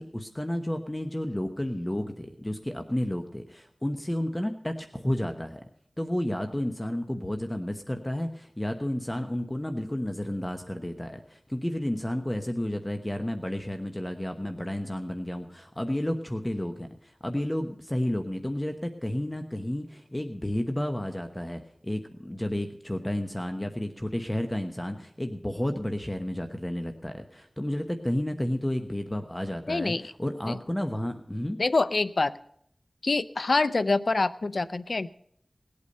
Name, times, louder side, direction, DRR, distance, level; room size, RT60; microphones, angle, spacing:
voice 1, 0.0-5.6 6.0-31.6, left 1 dB, 20° left, 6 dB, 1.1 m, -31 dB
voice 2, 29.7-30.1 30.5-30.6 31.6-32.4 33.0-35.1, left 3 dB, 70° left, 14 dB, 0.5 m, -26 dB
19.0 x 8.6 x 5.4 m, 0.68 s
wide cardioid pair, 55°, 0 cm